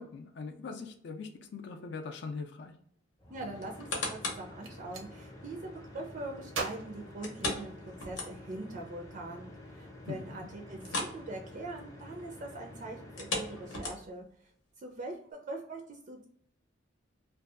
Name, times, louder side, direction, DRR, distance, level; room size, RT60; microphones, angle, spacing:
voice 1, 0.0-2.7 10.1-10.2, left 4 dB, 60° left, 6 dB, 0.4 m, -41 dB
sound 1, 3.2-13.9, left 1 dB, 15° left, 0.6 m, -49 dB
voice 2, 3.3-7.7 8.0-14.2 14.8-16.2, right 2 dB, 40° right, 2 dB, 0.4 m, -42 dB
sound 2, 3.6-4.5 5.0-5.1 7.2-8.7 9.0-9.1 9.6-9.7 10.8-11.2 11.5-11.7 13.0-14.3 14.9-15.0, left 2 dB, 80° left, 0.8 m, -37 dB
Gunshot gunfire, 4.6-5.1 6.5-8.0, right 4 dB, 90° right, 0.6 m, -40 dB
2.6 x 2.3 x 2.4 m, 0.64 s
head